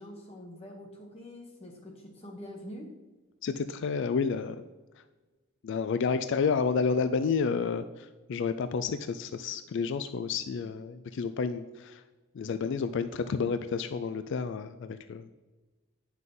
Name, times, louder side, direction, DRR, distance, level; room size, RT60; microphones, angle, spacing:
voice 1, 0.0-3.0, left 1 dB, 30° left, 0 dB, 1.0 m, -45 dB
voice 2, 3.4-4.6 5.6-12.0 12.3-15.3, left 5 dB, 55° left, 11 dB, 0.3 m, -30 dB
9.2 x 5.8 x 3.8 m, 1.2 s
head